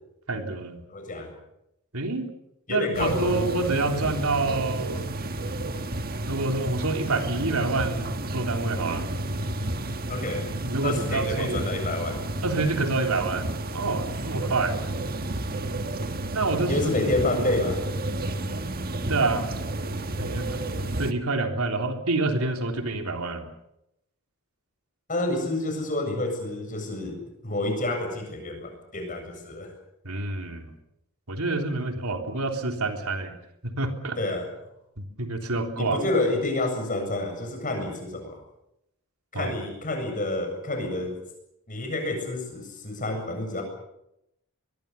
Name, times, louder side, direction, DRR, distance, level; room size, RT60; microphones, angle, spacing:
voice 1, 0.3-0.8 1.9-2.3 2.7-5.0 6.3-9.1 10.6-11.7 12.4-14.8 16.3-16.8 19.1-19.5 20.2-20.6 20.9-23.5 30.0-30.7 31.3-33.4 33.6-34.2 35.0-36.0 39.3-39.5, right 3 dB, 85° right, 4 dB, 3.4 m, -27 dB
voice 2, 0.9-1.3 2.7-3.5 10.1-10.5 10.8-12.3 14.2-14.6 16.7-17.8 25.1-29.7 34.2-34.5 35.8-38.4 39.3-41.2 41.7-43.6, left 2 dB, 35° left, 5 dB, 7.5 m, -29 dB
sound 1, 2.9-21.1, right 2 dB, 45° right, 1.5 m, -31 dB
23.5 x 22.5 x 7.0 m, 0.81 s
head